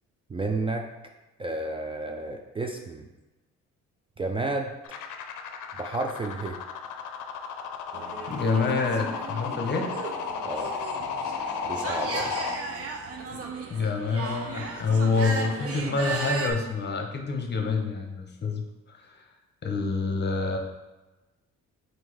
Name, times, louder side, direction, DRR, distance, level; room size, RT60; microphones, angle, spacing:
voice 1, 0.3-0.9 1.4-3.1 4.2-4.7 5.8-6.6 10.4-10.7 11.6-12.3, right 2 dB, 20° right, 2 dB, 0.3 m, -31 dB
sound 1, 4.8-12.6, left 6 dB, 85° left, 0.5 m, -34 dB
sound 2, 7.9-16.5, right 3 dB, 50° right, 0.7 m, -36 dB
voice 2, 8.3-9.9 13.3-13.4 13.7-19.2 19.6-20.6, left 4 dB, 35° left, 4 dB, 0.8 m, -27 dB
3.7 x 2.7 x 4.7 m, 1.1 s
cardioid pair, 90°, 30 cm